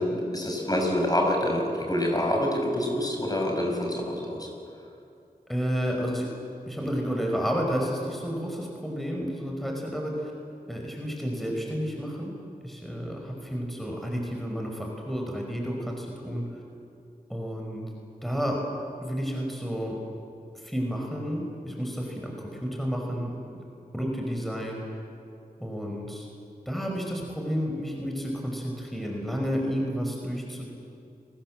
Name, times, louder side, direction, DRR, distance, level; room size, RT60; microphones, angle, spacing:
voice 1, 0.0-4.5, left 1 dB, 25° left, 0 dB, 5.9 m, -26 dB
voice 2, 5.5-6.3 6.7-10.3 10.7-12.4 12.6-16.6 17.3-17.8 18.2-18.6 19.0-20.0 20.6-23.6 23.9-24.8 25.6-26.3 26.7-30.7, equal, ahead, 0 dB, 5.3 m, -31 dB
29.5 x 19.5 x 7.8 m, 2.6 s
cardioid pair, 55°, 15 cm